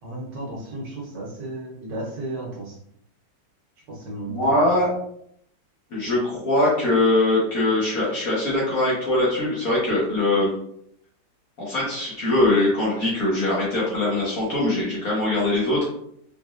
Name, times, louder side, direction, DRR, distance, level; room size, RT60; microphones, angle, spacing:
voice 1, 0.0-2.8 3.9-4.7, right 2 dB, 80° right, -3 dB, 1.6 m, -34 dB
voice 2, 4.4-4.9 5.9-10.5 11.6-15.8, left 2 dB, 55° left, -7 dB, 1.5 m, -22 dB
4.0 x 3.4 x 2.4 m, 0.71 s
omnidirectional pair, 1.9 m